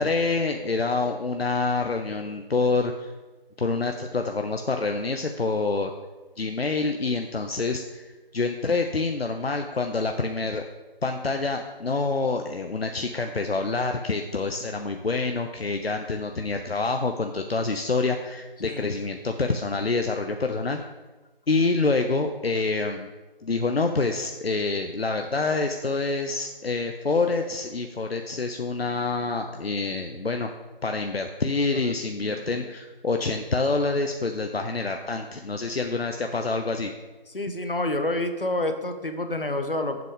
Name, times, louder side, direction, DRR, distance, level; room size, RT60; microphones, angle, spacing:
voice 1, 0.0-3.1 3.6-5.9 6.4-8.1 8.3-10.6 11.0-20.8 21.5-23.1 23.4-30.5 30.8-36.9, left 3 dB, 90° left, 5 dB, 0.8 m, -27 dB
voice 2, 31.7-32.7 37.3-40.0, left 1 dB, 65° left, 7 dB, 1.1 m, -29 dB
9.1 x 7.5 x 3.7 m, 1.2 s
figure-of-eight pair, 180°, 29 cm